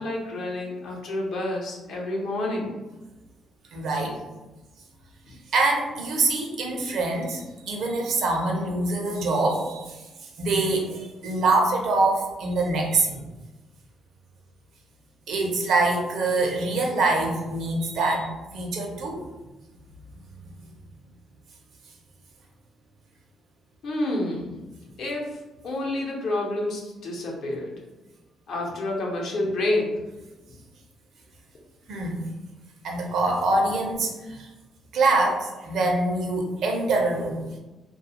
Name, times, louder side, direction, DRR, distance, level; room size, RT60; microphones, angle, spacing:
voice 1, 0.0-2.8 23.8-24.5 25.0-25.3 25.6-27.7 28.5-29.9, left 1 dB, 70° left, -2 dB, 0.7 m, -28 dB
voice 2, 3.7-4.2 5.5-10.0 10.4-13.1 15.3-19.2 31.9-32.2 32.8-34.5 34.9-37.4, right 2 dB, 75° right, 1 dB, 0.6 m, -24 dB
2.3 x 2.3 x 2.8 m, 1.1 s
cardioid pair, 90°, 0 cm